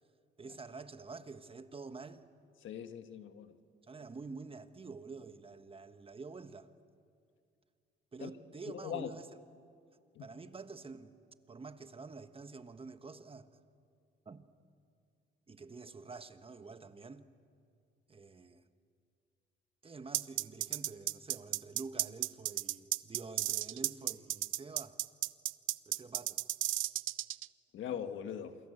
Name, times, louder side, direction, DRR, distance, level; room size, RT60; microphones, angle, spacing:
voice 1, 0.4-2.3 3.9-6.7 8.1-9.3 10.2-11.1 11.5-13.5 14.2-14.4 15.5-17.2 18.1-18.6 19.8-25.0 25.9-26.4, right 4 dB, 30° right, 1.4 m, -48 dB
voice 2, 2.6-3.5 8.2-8.3 8.8-9.1 10.1-10.3 27.7-28.6, left 9 dB, 75° left, 1.6 m, -40 dB
sound 1, 20.1-27.5, right 15 dB, 80° right, 0.6 m, -33 dB
28.5 x 23.0 x 8.0 m
cardioid pair, 90°, 20 cm